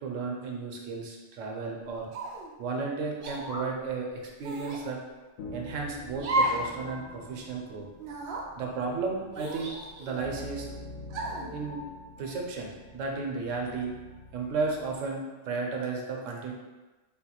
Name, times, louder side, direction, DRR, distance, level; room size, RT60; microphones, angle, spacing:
voice 1, 0.0-2.1 2.6-5.0 5.5-7.9 8.6-9.7 10.0-10.7 11.5-11.8 12.2-13.9 14.3-16.5, right 4 dB, 90° right, 1 dB, 1.0 m, -33 dB
sound 1, 2.1-2.5 3.2-3.4 4.4-4.8 6.2-6.7 7.0-7.1 8.0-8.4 9.3-10.3 11.1-11.5, right 1 dB, 60° right, 0.7 m, -32 dB
sound 2, 3.0-3.8, left 1 dB, 5° right, 0.5 m, -41 dB
sound 3, 5.4-15.0, left 1 dB, 75° left, 0.9 m, -46 dB
3.7 x 2.3 x 2.8 m, 1.2 s
omnidirectional pair, 1.3 m